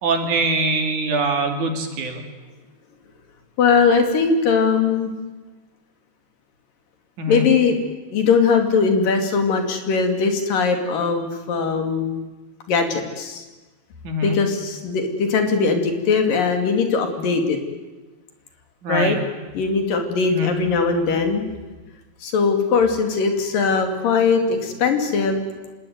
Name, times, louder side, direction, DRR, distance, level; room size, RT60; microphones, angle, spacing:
voice 1, 0.0-2.2 7.2-7.5 14.0-14.4 18.8-19.2 20.3-20.5, right 2 dB, 60° right, 4 dB, 4.0 m, -23 dB
voice 2, 3.6-5.1 7.3-7.8 8.1-12.3 12.7-13.4 14.2-17.6 18.9-19.2 19.5-21.5 22.2-25.5, left 5 dB, 75° left, 5 dB, 4.4 m, -20 dB
26.0 x 19.5 x 9.5 m, 1.2 s
omnidirectional pair, 4.0 m